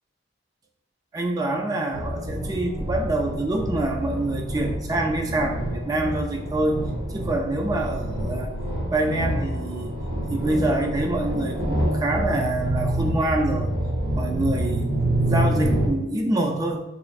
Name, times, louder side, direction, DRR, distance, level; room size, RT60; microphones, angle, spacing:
voice 1, 1.1-6.8 7.1-8.5 8.9-10.0 10.3-13.7 14.1-14.9 15.3-16.8, right 2 dB, 20° right, 2 dB, 0.3 m, -26 dB
sound 1, 1.9-15.9, right 1 dB, 55° right, 0.8 m, -27 dB
3.3 x 3.0 x 2.4 m, 0.97 s
head